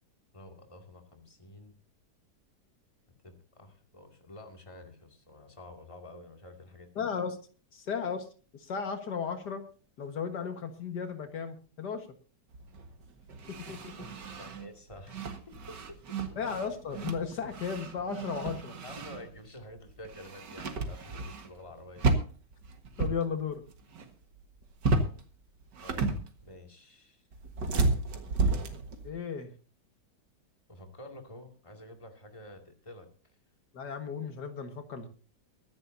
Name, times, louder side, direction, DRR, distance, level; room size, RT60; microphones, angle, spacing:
voice 1, 0.3-1.8 3.2-6.9 14.4-16.2 18.8-22.1 25.8-27.2 30.7-33.1, left 1 dB, 20° left, 4 dB, 2.4 m, -49 dB
voice 2, 7.0-7.4 7.7-8.3 8.5-9.6 10.0-12.1 13.5-14.1 16.4-18.8 23.0-23.6 29.0-29.5 33.7-35.1, left 6 dB, 75° left, 7 dB, 2.1 m, -35 dB
sound 1, 12.5-19.5 19.8-21.7 22.0-23.2 23.5-24.1 24.4-25.2 25.6-26.5 27.3-29.1, right 3 dB, 85° right, 2.2 m, -32 dB
23.0 x 10.5 x 2.7 m, 0.37 s
omnidirectional pair, 1.8 m